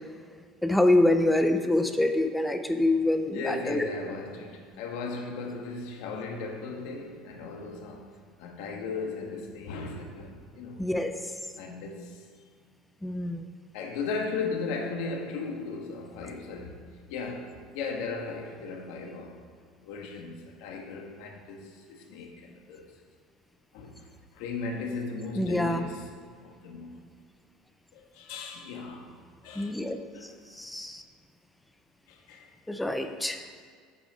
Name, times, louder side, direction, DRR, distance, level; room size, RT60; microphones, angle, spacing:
voice 1, 0.6-3.9 10.8-11.1 13.0-13.5 25.4-25.8 29.6-30.0 30.6-31.0 32.7-33.4, left 1 dB, 5° left, 0.4 m, -25 dB
voice 2, 3.2-8.1 8.4-10.9 11.5-12.2 13.7-19.4 19.8-22.9 23.7-24.1 24.3-26.1 26.4-27.0 27.9-29.1 29.4-29.8 30.1-30.3 32.1-32.5, left 4 dB, 70° left, 1.3 m, -37 dB
8.3 x 5.8 x 5.0 m
cardioid pair, 170°, 0 cm